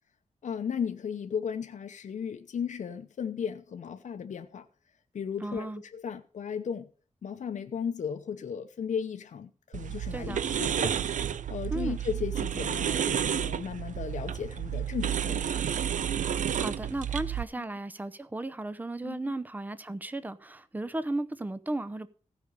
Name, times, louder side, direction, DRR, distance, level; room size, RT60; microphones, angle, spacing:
voice 1, 0.4-4.7 5.1-6.9 7.2-11.0 11.5-15.6 17.6-17.7 19.0-19.3, left 7 dB, 65° left, 0.8 m, -35 dB
voice 2, 5.4-5.8 10.1-10.5 11.7-12.0 16.4-22.1, right 2 dB, 15° right, 0.7 m, -35 dB
sound 1, 9.7-17.4, right 9 dB, 75° right, 0.6 m, -31 dB
15.5 x 5.3 x 6.6 m
wide cardioid pair, 120°, 13 cm